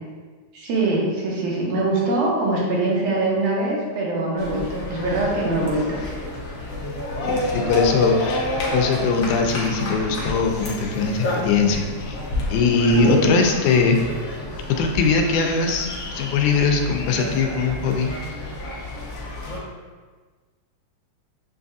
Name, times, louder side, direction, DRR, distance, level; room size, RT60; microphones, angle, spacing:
voice 1, 0.5-6.0 13.0-13.4, right 2 dB, 80° right, -3 dB, 2.3 m, -23 dB
sound 1, 4.4-19.6, left 1 dB, 70° left, 1.5 m, -29 dB
voice 2, 7.2-12.2 12.5-14.0 14.8-18.1, left 4 dB, 85° left, 3 dB, 2.0 m, -21 dB
7.4 x 2.6 x 2.4 m, 1.4 s
omnidirectional pair, 3.4 m